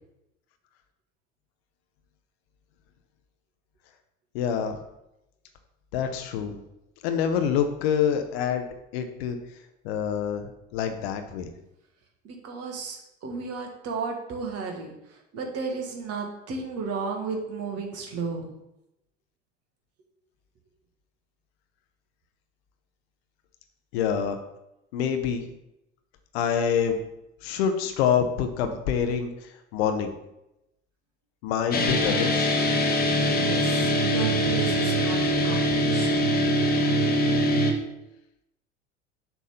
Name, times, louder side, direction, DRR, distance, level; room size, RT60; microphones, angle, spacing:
voice 1, 4.3-4.8 5.9-6.6 7.0-8.6 8.9-9.4 9.8-11.5 23.9-24.4 24.9-25.5 26.3-27.0 27.4-29.3 29.7-30.1 31.4-32.6, left 8 dB, 60° left, 7 dB, 0.9 m, -26 dB
voice 2, 12.2-14.9 15.3-18.5 33.1-36.2, right 4 dB, 40° right, 2 dB, 1.6 m, -34 dB
sound 1, 31.7-37.7, equal, 25° left, 1.2 m, -23 dB
6.8 x 3.6 x 5.7 m, 0.87 s
figure-of-eight pair, 70°, 35 cm